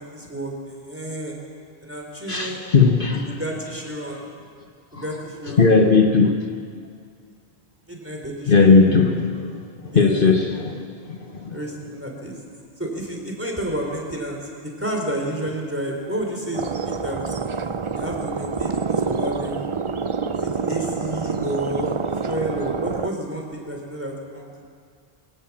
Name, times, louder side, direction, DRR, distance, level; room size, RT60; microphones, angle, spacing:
voice 1, 0.0-1.3 1.8-2.7 3.1-4.2 4.9-5.7 7.9-8.6 9.3-9.5 9.9-10.3 11.5-12.4 12.8-17.2 17.9-19.6 20.3-22.0 22.2-24.6, right 1 dB, 10° right, 0 dB, 3.9 m, -30 dB
voice 2, 2.3-3.4 5.0-5.1 5.6-6.4 8.5-9.2 9.9-11.6, left 4 dB, 55° left, 3 dB, 1.4 m, -17 dB
sound 1, 16.5-23.1, right 5 dB, 35° right, 0.5 m, -27 dB
23.0 x 17.5 x 7.4 m, 2.1 s
omnidirectional pair, 1.1 m